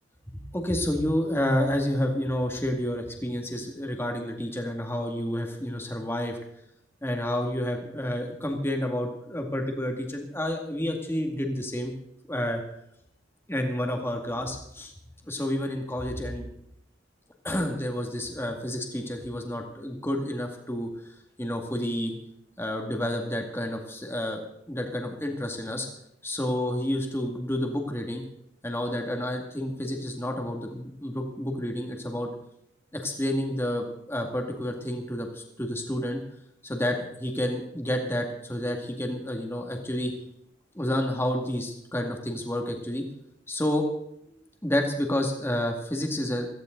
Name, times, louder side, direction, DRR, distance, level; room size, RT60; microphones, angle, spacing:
voice 1, 0.3-6.4 7.0-11.9 12.3-12.6 13.5-14.9 15.3-16.5 17.4-20.9 21.4-22.2 22.6-25.9 26.2-28.2 28.6-32.3 32.9-36.2 36.6-40.1 40.7-43.0 43.5-43.9 44.6-46.5, left 1 dB, 15° left, 3 dB, 2.1 m, -29 dB
17.0 x 15.0 x 3.9 m, 0.77 s
head